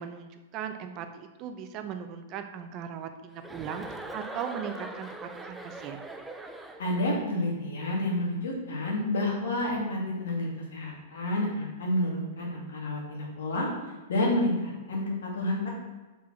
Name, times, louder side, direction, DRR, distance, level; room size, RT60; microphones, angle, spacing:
voice 1, 0.0-6.0, right 8 dB, 40° right, 7 dB, 0.8 m, -38 dB
Chuckle chortle, 3.4-7.2, right 2 dB, 5° right, 0.6 m, -41 dB
voice 2, 6.8-13.7 14.1-15.7, left 1 dB, 80° left, -1 dB, 2.4 m, -29 dB
5.5 x 4.8 x 6.2 m, 1.2 s
hypercardioid pair, 125°, 0 cm